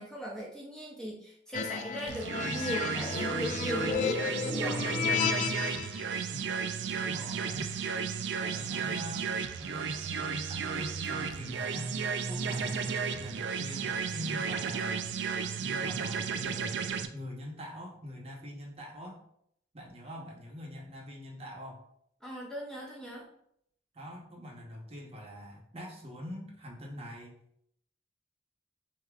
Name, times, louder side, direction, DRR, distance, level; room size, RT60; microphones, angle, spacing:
voice 1, 0.0-4.9 22.2-23.3, equal, 5° left, -4 dB, 0.6 m, -38 dB
sound 1, 1.5-6.0, left 6 dB, 45° left, 0.3 m, -33 dB
sound 2, 2.1-17.1, right 6 dB, 75° right, 0.4 m, -33 dB
voice 2, 6.8-7.7 8.3-11.9 12.2-15.1 15.6-16.7 17.1-19.2 19.7-21.8 23.9-27.3, equal, 35° right, -1 dB, 0.9 m, -44 dB
6.7 x 2.8 x 2.4 m, 0.71 s
head